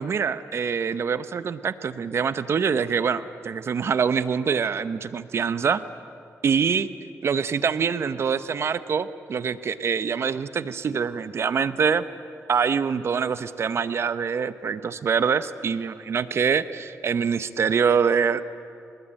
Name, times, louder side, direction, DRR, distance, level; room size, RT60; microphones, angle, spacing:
voice 1, 0.0-5.8 6.4-6.9 7.2-12.0 12.5-18.4, right 6 dB, 55° right, 13 dB, 0.9 m, -24 dB
26.0 x 20.0 x 9.0 m, 2.4 s
cardioid pair, 100°, 5 cm